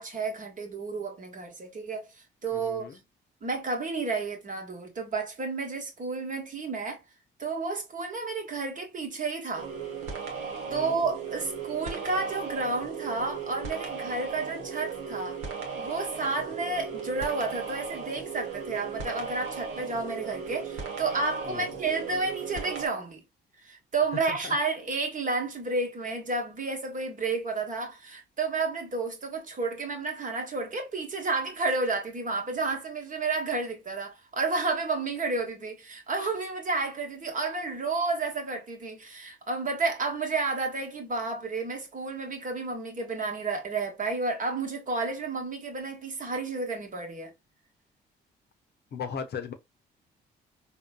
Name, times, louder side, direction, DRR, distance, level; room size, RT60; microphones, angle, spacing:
voice 1, 0.0-2.9 3.4-7.0 7.4-9.7 10.7-15.4 15.8-23.2 23.6-47.3, right 3 dB, 40° right, 1.1 m, -31 dB
voice 2, 2.5-3.0 10.6-11.0 21.5-21.7 24.3-24.6 48.9-49.5, left 6 dB, 50° left, 0.6 m, -37 dB
sound 1, 9.5-22.9, right 6 dB, 80° right, 0.8 m, -36 dB
3.7 x 2.2 x 2.2 m
supercardioid pair, 60°, 21 cm